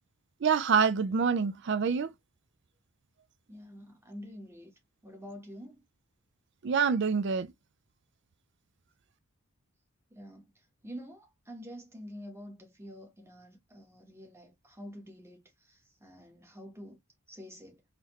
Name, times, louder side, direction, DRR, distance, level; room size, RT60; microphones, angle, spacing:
voice 1, 0.4-2.1 6.6-7.5, right 6 dB, 50° right, 0.4 m, -26 dB
voice 2, 3.5-4.7 5.0-5.8 10.1-10.5 10.8-17.0 17.3-17.8, equal, 10° right, 1.2 m, -47 dB
4.0 x 2.9 x 3.1 m
head